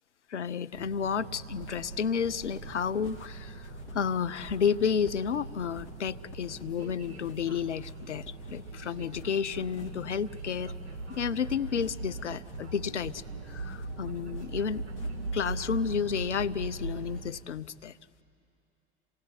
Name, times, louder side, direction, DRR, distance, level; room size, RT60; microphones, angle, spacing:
voice 1, 0.3-10.7 11.2-14.8 15.3-17.9, left 7 dB, 85° left, 15 dB, 0.6 m, -31 dB
sound 1, 0.7-17.3, right 3 dB, 70° right, 2.3 m, -40 dB
sound 2, 1.5-15.6, left 3 dB, 35° left, 2.4 m, -55 dB
27.5 x 18.0 x 9.8 m, 2.7 s
figure-of-eight pair, 75°, 34 cm